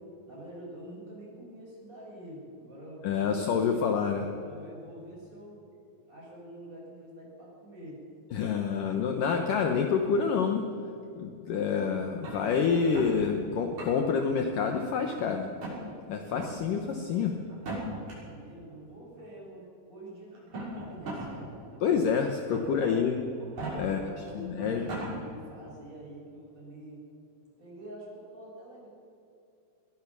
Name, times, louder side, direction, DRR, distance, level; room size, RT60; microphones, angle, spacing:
voice 1, 0.3-4.1 4.4-5.6 6.0-8.0 18.2-21.7 22.6-23.0 23.8-27.0 27.6-28.9, equal, 15° right, -4 dB, 7.4 m, -46 dB
voice 2, 3.0-4.3 8.3-10.7 11.1-15.5 16.1-17.4 21.8-23.2 23.7-24.0 24.3-24.9, left 6 dB, 75° left, 4 dB, 1.9 m, -27 dB
sound 1, 12.2-13.1 13.6-14.2 14.6-15.2 15.6-15.8 16.3-16.5 17.5-18.1 19.2-19.3 20.3-21.3 21.7-21.8 22.5-22.9 23.4-23.7 24.3-24.4 24.6-25.1, right 2 dB, 35° right, 7.5 m, -38 dB
22.0 x 19.5 x 6.1 m, 2.7 s
omnidirectional pair, 5.5 m